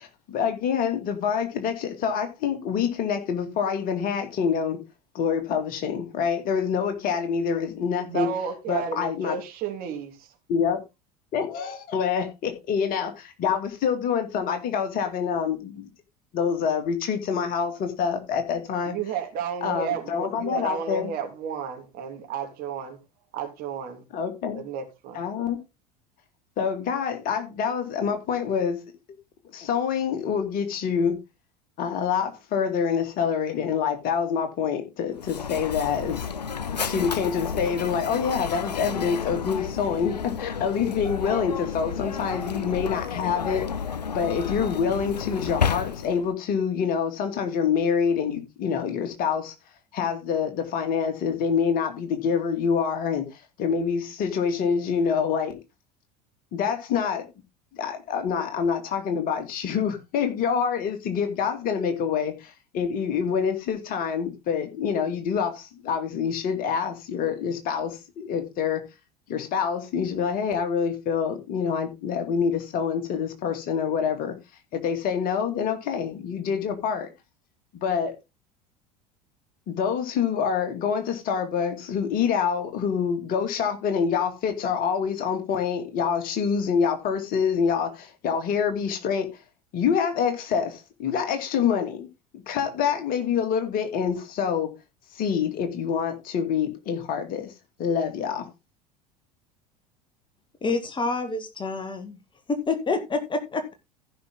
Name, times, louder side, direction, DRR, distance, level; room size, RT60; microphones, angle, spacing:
voice 1, 0.0-4.8 5.1-8.3 8.7-9.4 10.5-10.8 11.3-15.9 16.3-19.0 19.6-21.1 24.1-24.6 25.1-25.6 26.6-28.8 29.5-31.2 31.8-36.3 36.7-43.7 44.1-49.5 49.9-53.3 53.6-55.6 56.5-57.2 57.7-68.8 69.3-74.3 74.7-77.1 77.7-78.1 79.7-89.3 89.7-92.1 92.3-94.7 95.1-97.5 97.8-98.5, left 7 dB, 45° left, 2.5 m, -26 dB
voice 2, 8.0-10.3 18.8-23.0 23.3-24.1 24.5-25.2, right 7 dB, 45° right, 3.0 m, -32 dB
Mechanisms, 35.2-46.3, left 6 dB, 85° left, 0.5 m, -31 dB
voice 3, 100.6-102.2 102.5-103.7, left 3 dB, 25° left, 1.7 m, -27 dB
15.0 x 5.9 x 3.8 m
figure-of-eight pair, 70°, 20 cm